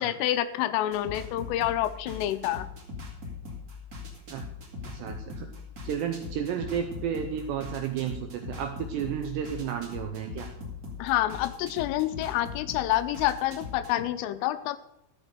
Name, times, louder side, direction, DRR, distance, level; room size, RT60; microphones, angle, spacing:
voice 1, 0.0-2.7 11.0-14.8, left 13 dB, 85° left, 12 dB, 3.2 m, -28 dB
sound 1, 0.9-14.0, left 4 dB, 50° right, 1.0 m, -41 dB
voice 2, 4.9-5.5 5.8-10.5, right 8 dB, 85° right, 4 dB, 2.5 m, -32 dB
13.5 x 6.2 x 6.6 m, 0.80 s
omnidirectional pair, 5.8 m